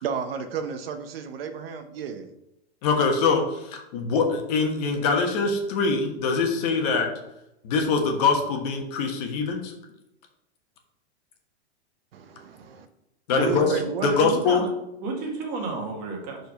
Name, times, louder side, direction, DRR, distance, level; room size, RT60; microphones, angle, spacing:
voice 1, 0.0-2.3 12.1-12.9 13.3-14.2, right 6 dB, 60° right, 8 dB, 0.8 m, -32 dB
voice 2, 2.8-7.1 7.6-9.7 13.3-13.7 14.0-14.6, left 4 dB, 35° left, 3 dB, 1.2 m, -23 dB
voice 3, 13.4-14.7 15.0-16.4, right 3 dB, 25° right, 1 dB, 1.3 m, -32 dB
4.9 x 4.5 x 5.7 m, 0.87 s
supercardioid pair, 165°, 33 cm